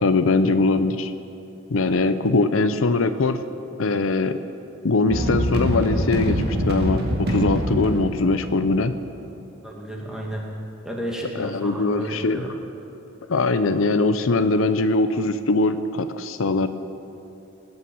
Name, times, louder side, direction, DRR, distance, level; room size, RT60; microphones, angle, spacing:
voice 1, 0.0-1.1 1.7-3.5 3.8-4.4 4.8-9.0 11.4-12.4 13.3-16.7, left 3 dB, 85° left, 11 dB, 0.7 m, -21 dB
sound 1, 5.1-9.1, equal, 55° right, 1.9 m, -25 dB
voice 2, 9.6-10.4 10.8-12.5, right 1 dB, 5° right, -2 dB, 2.3 m, -32 dB
19.0 x 8.8 x 7.2 m, 2.7 s
head